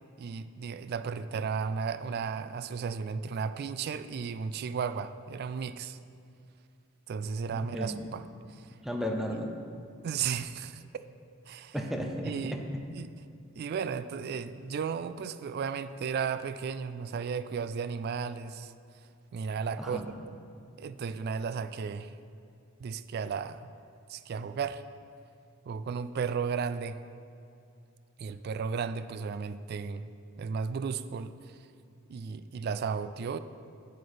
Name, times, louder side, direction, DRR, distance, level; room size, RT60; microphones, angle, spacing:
voice 1, 0.2-6.0 7.1-8.2 8.5-8.6 10.0-11.0 11.5-11.7 12.2-12.6 13.0-13.1 13.6-18.7 19.3-20.0 20.8-22.1 22.8-23.7 24.1-24.8 25.7-27.0 28.2-30.1 30.4-31.3 32.1-33.4, right 6 dB, 50° right, 13 dB, 0.3 m, -34 dB
voice 2, 7.5-8.1 8.8-9.5 11.7-12.6 19.8-20.1, equal, ahead, 2 dB, 0.7 m, -34 dB
8.0 x 7.8 x 5.0 m, 2.5 s
head